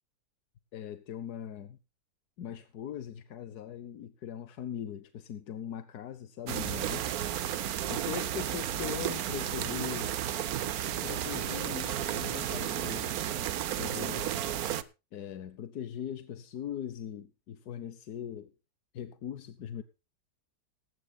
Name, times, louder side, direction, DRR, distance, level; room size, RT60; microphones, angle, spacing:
voice 1, 0.7-1.8 2.4-7.1 7.9-10.2 11.0-13.1 13.8-14.3 15.1-18.5 18.9-19.8, left 9 dB, 90° left, 1.5 m, -40 dB
sound 1, 6.5-14.8, right 11 dB, 75° right, 1.3 m, -33 dB
18.5 x 15.5 x 2.3 m
omnidirectional pair, 1.6 m